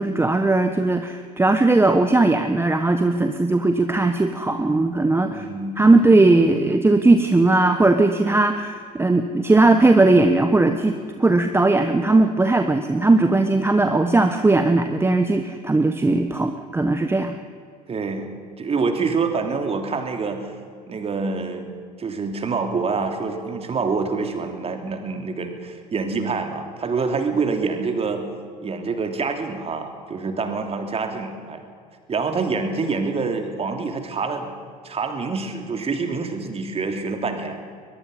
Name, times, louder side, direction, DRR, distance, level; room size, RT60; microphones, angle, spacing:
voice 1, 0.0-5.5 5.8-10.9 11.2-17.3, right 2 dB, 10° right, 7 dB, 1.1 m, -18 dB
voice 2, 5.3-5.8 17.9-18.3 18.6-20.5 20.9-21.7 22.0-28.2 28.6-31.6 32.1-34.5 34.8-37.6, right 4 dB, 30° right, 5 dB, 3.0 m, -26 dB
23.0 x 21.5 x 5.5 m, 2.1 s
figure-of-eight pair, 65°, 21 cm